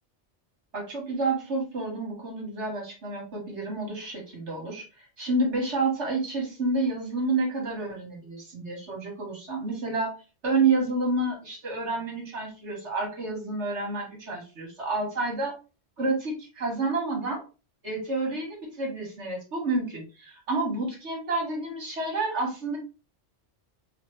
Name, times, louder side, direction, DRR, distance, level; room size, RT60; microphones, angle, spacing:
voice 1, 0.7-4.8 5.2-10.1 10.4-15.5 16.0-17.4 17.8-22.8, right 3 dB, 70° right, 0 dB, 2.0 m, -29 dB
5.0 x 2.6 x 3.1 m, 0.31 s
omnidirectional pair, 1.2 m